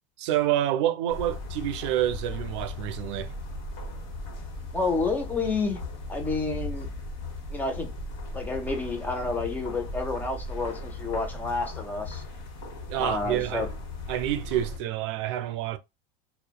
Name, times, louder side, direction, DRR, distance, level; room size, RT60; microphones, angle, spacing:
voice 1, 0.2-3.3 12.9-13.7 14.1-15.8, right 12 dB, 70° right, 0.4 m, -28 dB
sound 1, 1.1-14.8, left 2 dB, 55° left, 1.1 m, -37 dB
voice 2, 4.7-5.8 6.1-6.9 7.5-7.9 8.3-12.2 12.9-13.7, left 3 dB, 10° left, 0.4 m, -29 dB
2.8 x 2.1 x 2.2 m
supercardioid pair, 160°, 16 cm